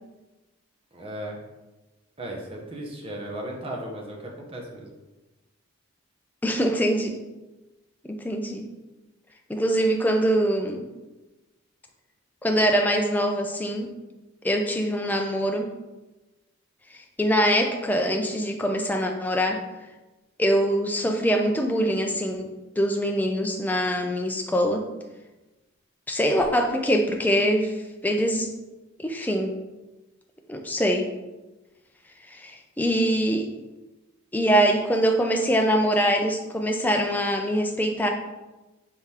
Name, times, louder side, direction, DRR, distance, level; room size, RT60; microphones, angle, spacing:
voice 1, 0.9-1.4 2.2-4.9, right 1 dB, 25° right, 0 dB, 0.7 m, -36 dB
voice 2, 6.4-7.2 8.0-8.7 9.5-10.9 12.4-13.9 14.4-15.7 16.9-19.6 20.4-24.8 26.1-28.5 29.0-29.5 30.5-31.1 32.2-33.5 34.3-38.1, equal, 10° left, 3 dB, 0.3 m, -23 dB
4.7 x 3.7 x 2.8 m, 1.1 s
head